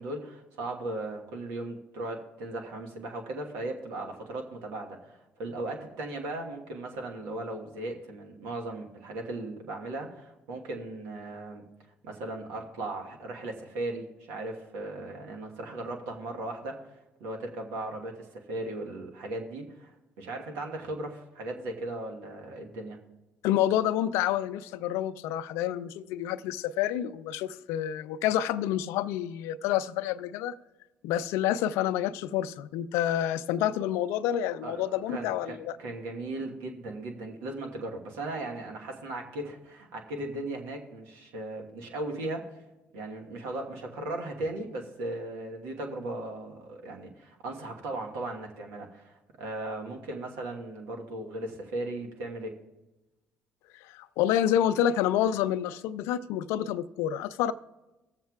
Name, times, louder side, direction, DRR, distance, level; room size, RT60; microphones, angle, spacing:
voice 1, 0.0-11.6 12.0-16.9 17.2-23.0 34.6-42.5 42.9-52.5, right 2 dB, 85° right, 2 dB, 1.2 m, -37 dB
voice 2, 23.4-30.5 31.0-35.8 53.8-57.5, left 11 dB, 80° left, 13 dB, 0.4 m, -28 dB
17.5 x 7.3 x 2.4 m, 1.0 s
supercardioid pair, 60°, 4 cm